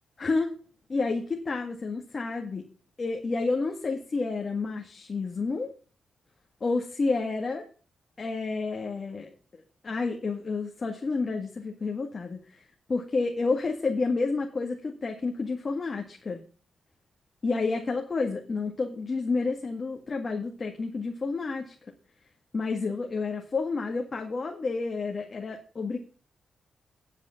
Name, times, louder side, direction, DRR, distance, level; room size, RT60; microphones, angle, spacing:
voice 1, 0.2-0.5 0.9-2.7 3.0-5.7 6.6-7.7 8.2-12.6 12.9-16.4 17.4-21.7 22.5-26.0, left 3 dB, 50° left, 2 dB, 1.9 m, -30 dB
10.0 x 7.3 x 5.8 m, 0.40 s
supercardioid pair, 50°, 0 cm